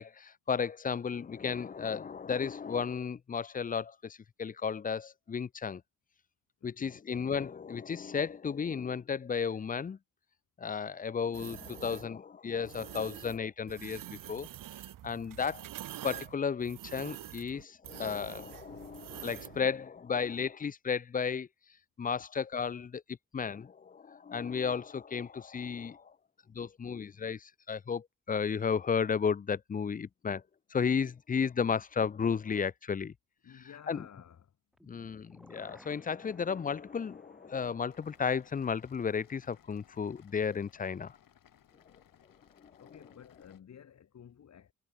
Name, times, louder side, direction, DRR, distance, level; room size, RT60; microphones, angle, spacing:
voice 1, 0.0-5.8 6.6-10.0 10.6-14.5 15.0-15.6 16.0-21.5 22.0-26.1 26.5-30.4 30.7-33.1 33.9-34.1 34.9-41.2 42.6-42.7, left 6 dB, 25° left, 0.4 m, -34 dB
voice 2, 6.6-7.0 15.2-15.5 33.4-34.6 42.8-44.7, left 8 dB, 55° left, 1.7 m, -53 dB
sound 1, 11.3-12.1 12.6-13.4 13.7-19.6, right 13 dB, 85° right, 0.9 m, -46 dB
sound 2, 34.7-40.8 41.1-41.2, equal, ahead, 3.9 m, -62 dB
sound 3, 37.9-43.6, left 10 dB, 85° left, 6.8 m, -63 dB
wide cardioid pair, 130°, 32 cm